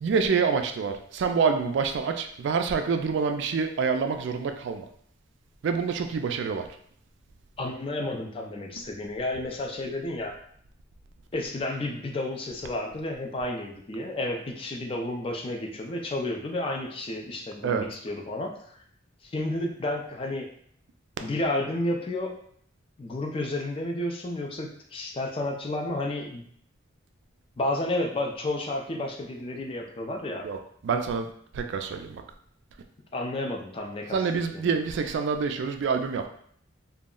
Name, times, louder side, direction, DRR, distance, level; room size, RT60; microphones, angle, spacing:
voice 1, 0.0-4.9 5.6-6.7 17.6-17.9 30.4-30.6 30.8-32.2 34.1-36.3, right 5 dB, 60° right, 6 dB, 0.3 m, -27 dB
voice 2, 7.6-10.3 11.3-18.5 19.2-20.5 21.2-22.3 23.0-26.4 27.6-30.5 33.1-34.7, left 1 dB, 25° left, 2 dB, 0.3 m, -31 dB
2.3 x 2.0 x 3.6 m, 0.62 s
head